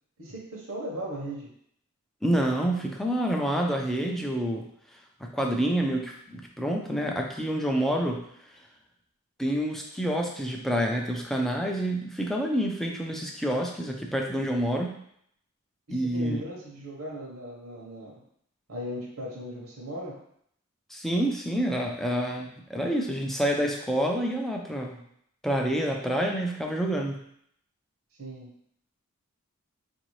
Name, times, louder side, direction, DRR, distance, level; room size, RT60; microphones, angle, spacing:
voice 1, 0.2-1.5 15.9-18.2 18.7-20.2 28.2-28.5, right 1 dB, 70° right, -4 dB, 1.0 m, -37 dB
voice 2, 2.2-4.7 5.2-8.3 9.4-15.0 15.9-16.4 20.9-25.0 25.4-27.2, right 1 dB, ahead, 0 dB, 0.4 m, -28 dB
4.8 x 2.6 x 3.1 m, 0.70 s
head